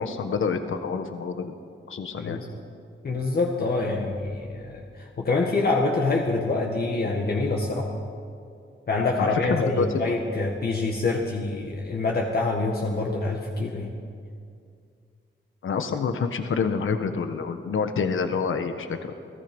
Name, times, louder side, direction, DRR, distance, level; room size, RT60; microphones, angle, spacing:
voice 1, 0.0-1.5 1.9-2.4 9.2-10.1 15.6-19.1, left 5 dB, 75° left, 7 dB, 1.3 m, -27 dB
voice 2, 3.0-7.9 8.9-13.9, left 3 dB, 50° left, 0 dB, 1.9 m, -26 dB
29.0 x 19.0 x 5.4 m, 2.3 s
wide cardioid pair, 180°, 21 cm